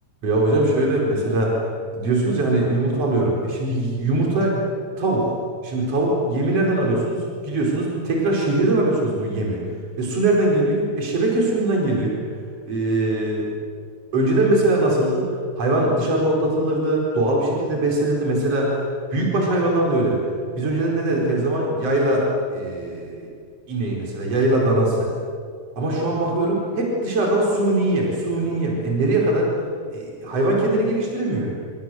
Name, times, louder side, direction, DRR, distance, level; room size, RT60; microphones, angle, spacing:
voice 1, 0.2-1.6 1.9-4.5 5.0-5.3 5.6-7.2 7.4-9.6 10.0-12.2 12.7-13.5 14.1-15.3 15.6-18.8 19.1-20.2 20.6-23.3 23.7-25.1 25.8-29.5 29.9-31.5, right 2 dB, 55° right, -2 dB, 5.7 m, -21 dB
28.5 x 26.5 x 7.9 m, 2.2 s
omnidirectional pair, 3.3 m